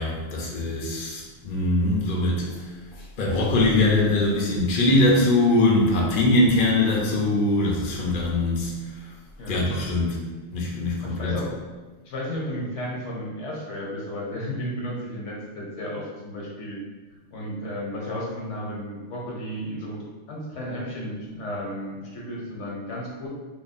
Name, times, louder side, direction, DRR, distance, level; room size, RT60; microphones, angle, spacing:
voice 1, 0.0-2.6 3.2-8.7 9.5-10.2 10.5-11.4, left 2 dB, 50° left, -3 dB, 0.7 m, -22 dB
voice 2, 11.0-11.5 12.0-16.8 17.3-23.3, equal, 75° left, -4 dB, 1.2 m, -33 dB
3.4 x 2.0 x 4.0 m, 1.3 s
omnidirectional pair, 1.3 m